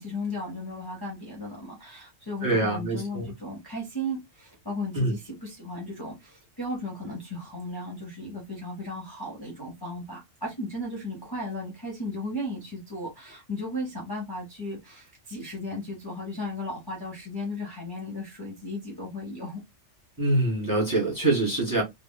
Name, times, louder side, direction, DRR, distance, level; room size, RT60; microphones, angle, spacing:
voice 1, 0.0-19.6, left 1 dB, 20° left, 0.9 m, -35 dB
voice 2, 2.4-3.3 4.9-5.1 20.2-21.8, right 2 dB, 15° right, 1.2 m, -24 dB
3.3 x 2.3 x 2.2 m
omnidirectional pair, 1.3 m